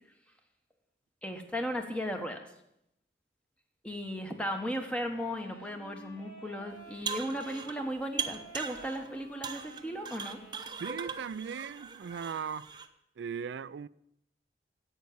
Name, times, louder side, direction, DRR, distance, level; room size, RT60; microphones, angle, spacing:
voice 1, 1.2-2.5 3.8-10.4, equal, 5° left, 1.3 m, -36 dB
Wind instrument woodwind instrument, 4.5-11.6, right 2 dB, 45° left, 3.7 m, -52 dB
sound 1, 6.8-7.8 8.2-9.1 9.4-12.9, right 6 dB, 25° right, 0.8 m, -39 dB
voice 2, 10.8-12.7 13.2-13.9, right 7 dB, 90° right, 0.4 m, -38 dB
11.0 x 8.1 x 8.5 m
head